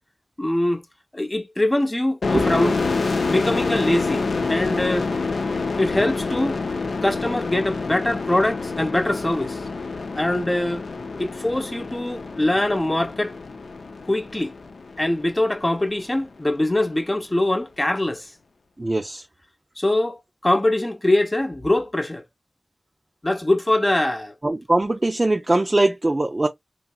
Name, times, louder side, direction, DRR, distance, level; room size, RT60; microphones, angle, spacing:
voice 1, 0.4-0.8 1.1-2.7 3.3-5.1 5.8-6.6 7.0-9.6 10.2-10.9 11.1-13.4 14.1-14.5 15.0-18.3 19.8-22.2 23.2-24.3, left 1 dB, 25° left, 0.6 m, -23 dB
sound 1, 2.2-15.7, left 4 dB, 80° left, 0.5 m, -27 dB
voice 2, 18.8-19.2 24.4-26.5, right 2 dB, 35° right, 0.4 m, -21 dB
2.9 x 2.7 x 2.2 m
cardioid pair, 50°, 0 cm